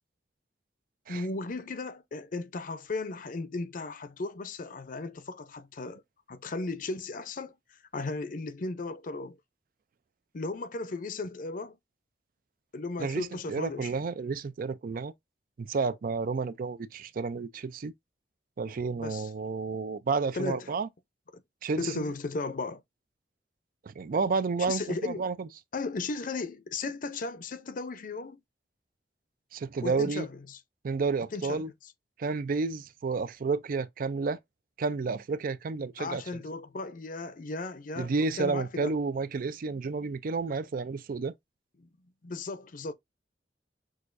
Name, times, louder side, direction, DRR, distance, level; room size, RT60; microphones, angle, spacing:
voice 1, 1.1-6.0 6.3-9.4 10.3-11.8 12.7-13.9 18.9-19.3 20.3-20.7 21.3-21.4 21.8-22.8 24.7-25.2 25.7-28.4 29.8-30.6 31.3-31.6 36.0-38.1 38.4-38.9 41.8-41.9 42.2-42.9, left 3 dB, 50° left, 0.6 m, -36 dB
voice 2, 13.0-15.1 15.6-17.9 18.6-20.9 21.6-22.0 23.9-25.5 29.5-30.3 30.8-31.7 32.2-34.4 34.8-36.2 38.0-41.3, right 4 dB, 50° right, 0.4 m, -31 dB
6.4 x 2.5 x 2.5 m
head